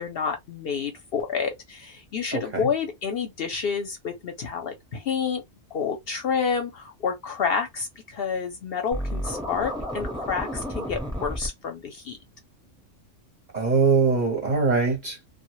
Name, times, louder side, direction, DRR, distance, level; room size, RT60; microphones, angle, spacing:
voice 1, 0.0-5.4 5.7-12.2, left 6 dB, 60° left, 0.7 m, -29 dB
voice 2, 2.3-2.7 13.5-15.2, right 5 dB, 45° right, 0.6 m, -22 dB
Scratching (performance technique), 8.9-11.5, equal, 5° right, 0.5 m, -31 dB
2.1 x 2.1 x 3.0 m
omnidirectional pair, 1.3 m